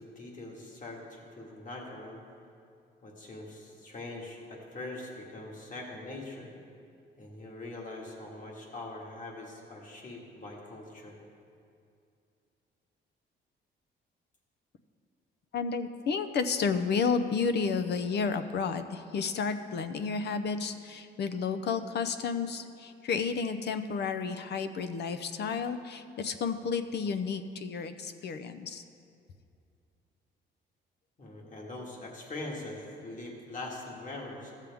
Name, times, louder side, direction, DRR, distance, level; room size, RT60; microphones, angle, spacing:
voice 1, 0.0-2.2 3.0-6.5 7.2-11.2 31.2-34.5, left 2 dB, 40° left, -1 dB, 1.9 m, -42 dB
voice 2, 15.5-28.8, left 5 dB, 60° left, 10 dB, 0.6 m, -31 dB
14.5 x 7.4 x 3.5 m, 2.5 s
cardioid pair, 90°, 20 cm